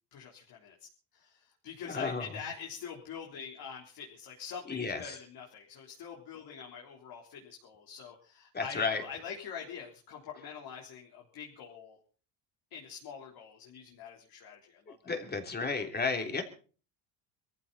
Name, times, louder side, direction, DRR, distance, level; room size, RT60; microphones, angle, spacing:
voice 1, 0.1-0.8 1.1-12.0 12.7-15.1, left 7 dB, 50° left, -1 dB, 3.9 m, -45 dB
voice 2, 1.9-2.2 4.7-5.1 8.5-9.0 15.1-16.4, left 4 dB, 20° left, 5 dB, 3.2 m, -32 dB
22.5 x 14.5 x 4.2 m, 0.40 s
supercardioid pair, 110°, 45 cm